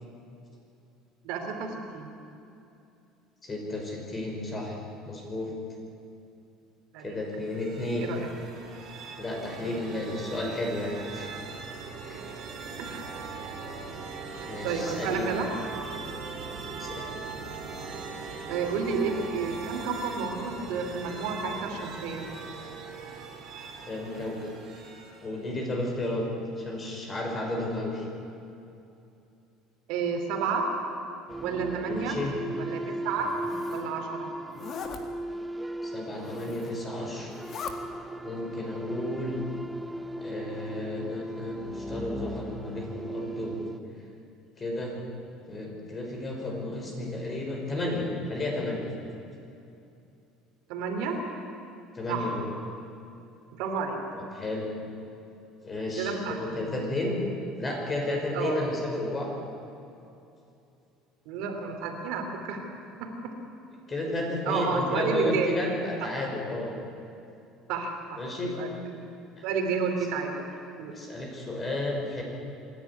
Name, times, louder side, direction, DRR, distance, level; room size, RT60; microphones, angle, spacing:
voice 1, 1.2-2.1 6.9-7.2 8.0-8.3 9.6-9.7 12.8-13.1 14.3-15.5 18.5-22.3 29.9-30.7 31.4-32.2 32.6-33.3 33.7-34.3 50.7-51.2 52.1-52.3 53.6-54.0 56.0-56.6 58.3-58.6 61.2-62.6 63.0-63.3 64.4-65.5 67.7-69.0 69.4-70.3 70.7-70.9, right 5 dB, 75° right, 3 dB, 3.3 m, -31 dB
voice 2, 3.4-4.8 5.1-5.5 7.0-8.1 9.2-11.3 12.0-12.3 14.5-15.3 16.8-17.1 23.9-24.5 25.2-26.3 26.6-28.0 31.9-32.4 35.8-37.3 38.2-39.4 40.2-43.6 44.6-44.9 45.5-48.9 51.9-52.4 54.1-54.7 55.6-57.2 57.6-59.3 63.9-66.7 68.2-68.5 69.4-69.5 70.9-72.2, left 1 dB, 25° left, 0 dB, 5.2 m, -32 dB
sound 1, 7.3-25.5, right 4 dB, 45° right, 4.4 m, -40 dB
sound 2, 31.3-43.8, right 1 dB, 5° right, 0.7 m, -37 dB
Zipper (clothing), 33.1-33.9 34.5-35.0 36.1-36.8 37.2-37.8, left 6 dB, 40° left, 1.9 m, -40 dB
26.0 x 11.5 x 9.8 m, 2.7 s
cardioid pair, 130°, 0 cm